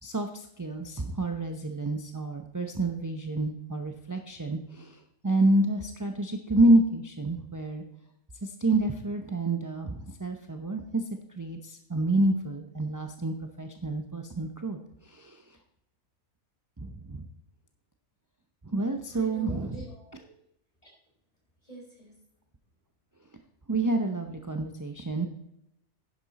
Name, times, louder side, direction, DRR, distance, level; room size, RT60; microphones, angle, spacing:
voice 1, 0.0-7.8 8.4-11.0 11.4-15.6 16.8-17.2 18.6-19.7 23.7-25.3, right 2 dB, 20° right, 4 dB, 0.5 m, -28 dB
voice 2, 19.1-20.3 20.8-20.9 21.6-22.2, right 2 dB, 25° left, -3 dB, 4.8 m, -46 dB
10.5 x 10.5 x 4.1 m, 0.80 s
omnidirectional pair, 1.5 m